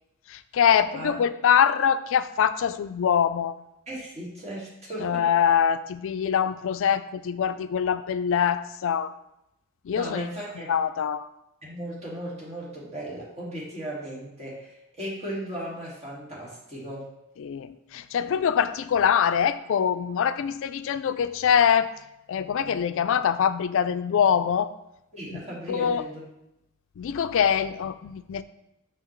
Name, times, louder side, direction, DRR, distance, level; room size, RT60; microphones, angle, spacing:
voice 1, 0.3-3.6 5.0-9.1 9.8-10.3 10.7-11.3 17.4-21.9 22.3-24.7 25.3-25.4 25.7-26.0 27.0-28.4, left 8 dB, 65° left, 12 dB, 0.3 m, -24 dB
voice 2, 3.9-5.3 9.9-10.7 11.6-17.1 25.1-26.3, right 1 dB, 30° right, -6 dB, 2.1 m, -36 dB
5.8 x 5.8 x 3.1 m, 0.85 s
head